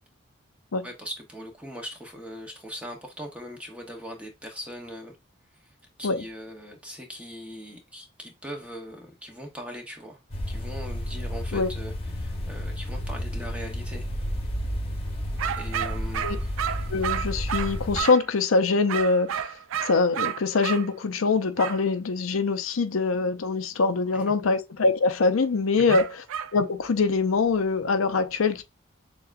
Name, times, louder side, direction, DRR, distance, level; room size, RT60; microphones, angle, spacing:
voice 1, 0.8-5.2 5.5-5.7 6.0-10.2 10.5-14.1 15.6-16.9 24.1-24.3 25.7-26.0, equal, 5° right, 0.9 m, -40 dB
sound 1, 10.3-18.0, equal, 30° left, 1.1 m, -31 dB
sound 2, 15.4-18.3 18.9-20.9 21.6-21.8 25.9-26.5, right 9 dB, 85° right, 0.4 m, -31 dB
voice 2, 16.9-19.5 19.8-26.1 26.5-28.6, left 4 dB, 85° left, 0.6 m, -23 dB
6.7 x 2.3 x 2.5 m
head